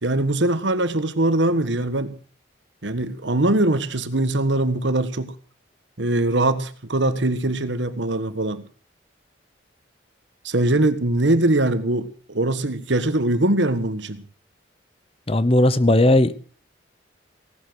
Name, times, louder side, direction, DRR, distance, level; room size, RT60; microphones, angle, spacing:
voice 1, 0.0-2.2 2.8-5.3 6.0-8.6 10.4-14.2, right 1 dB, 70° right, 1.5 m, -22 dB
voice 2, 15.3-16.3, left 1 dB, 30° left, 0.9 m, -16 dB
17.5 x 12.0 x 6.3 m
head